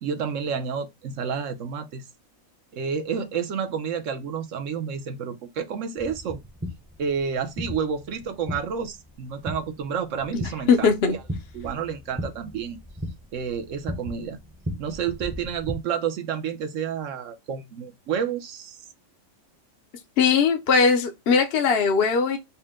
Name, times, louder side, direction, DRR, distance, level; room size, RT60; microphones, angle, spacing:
voice 1, 0.0-2.0 2.7-6.4 7.0-10.9 11.5-12.8 13.3-14.4 14.8-18.8, right 7 dB, 70° right, 1.0 m, -30 dB
sound 1, 6.0-15.8, equal, 10° right, 0.6 m, -37 dB
voice 2, 10.7-11.2 20.2-22.4, left 5 dB, 55° left, 0.8 m, -20 dB
4.2 x 2.1 x 3.5 m
omnidirectional pair, 1.5 m